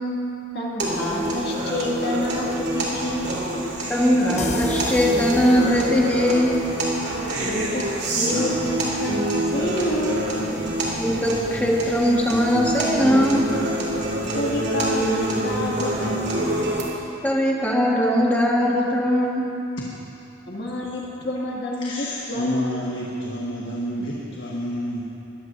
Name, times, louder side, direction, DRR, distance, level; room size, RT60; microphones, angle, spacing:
voice 1, 0.5-3.3 7.4-7.8 8.1-10.3 14.3-16.6 20.5-22.8, left 1 dB, 55° left, -3 dB, 2.2 m, -28 dB
sound 1, 0.8-16.8, right 1 dB, 55° right, 2.7 m, -26 dB
voice 2, 3.9-6.5 11.0-13.5 17.2-19.4, equal, 10° left, -3 dB, 1.6 m, -20 dB
sound 2, 4.4-7.9, left 2 dB, 35° left, 1.0 m, -35 dB
voice 3, 21.8-25.0, equal, 70° left, -4 dB, 1.4 m, -29 dB
21.5 x 16.0 x 2.7 m, 2.8 s
head